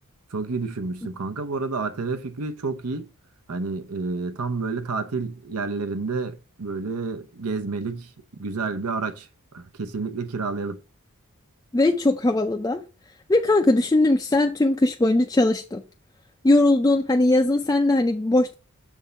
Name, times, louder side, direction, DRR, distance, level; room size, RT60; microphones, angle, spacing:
voice 1, 0.3-3.1 3.5-10.8, right 4 dB, 85° right, 0.8 m, -30 dB
voice 2, 11.7-12.8 13.3-15.8 16.4-18.5, left 2 dB, 15° left, 0.3 m, -20 dB
6.8 x 3.6 x 5.3 m
head